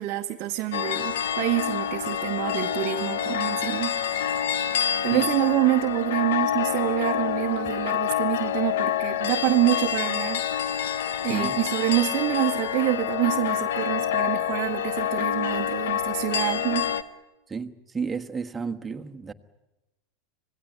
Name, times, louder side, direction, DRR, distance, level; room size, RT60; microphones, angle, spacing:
voice 1, 0.0-3.9 5.0-11.0 11.2-16.9, right 17 dB, 50° right, 1.0 m, -27 dB
sound 1, 0.7-17.0, left 9 dB, 70° left, 1.0 m, -27 dB
voice 2, 11.2-11.6 17.5-19.3, right 5 dB, 15° right, 1.4 m, -32 dB
26.5 x 19.0 x 9.1 m
figure-of-eight pair, 85°, 0 cm